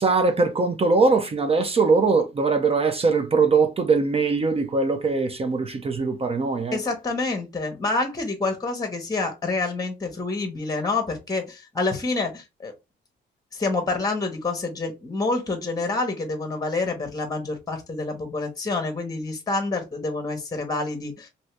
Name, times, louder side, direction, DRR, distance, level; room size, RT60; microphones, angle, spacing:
voice 1, 0.0-6.8, right 4 dB, 30° right, 0.5 m, -21 dB
voice 2, 6.7-12.7 13.5-21.3, left 3 dB, 20° left, 1.0 m, -27 dB
2.7 x 2.6 x 3.2 m
cardioid pair, 90°, 20 cm